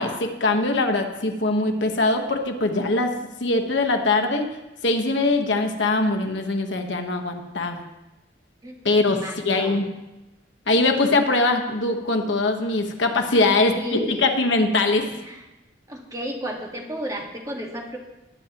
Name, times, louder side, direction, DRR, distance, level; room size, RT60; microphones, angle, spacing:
voice 1, 0.0-3.1 3.4-4.6 4.8-7.8 8.8-9.9 10.7-15.0, left 2 dB, 75° left, 4 dB, 1.2 m, -22 dB
voice 2, 9.0-9.8 13.4-14.2 15.3-15.4 15.9-18.0, equal, 20° right, 0 dB, 1.6 m, -33 dB
21.0 x 9.0 x 3.0 m, 1.0 s
head